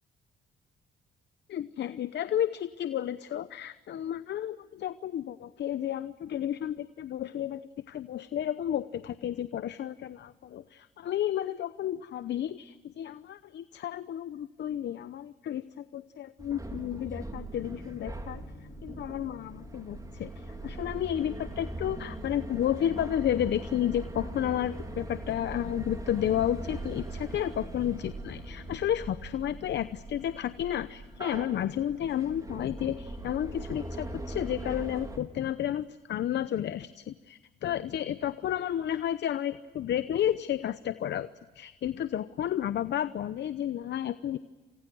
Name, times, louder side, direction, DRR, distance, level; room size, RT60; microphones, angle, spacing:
voice 1, 1.5-18.4 18.8-41.3 41.6-44.4, left 11 dB, 60° left, 14 dB, 0.8 m, -32 dB
sound 1, 16.4-35.2, right 2 dB, 20° right, 4.0 m, -41 dB
sound 2, 17.5-34.6, left 5 dB, 45° left, 3.7 m, -53 dB
29.5 x 26.5 x 6.2 m, 1.3 s
cardioid pair, 90°, 20 cm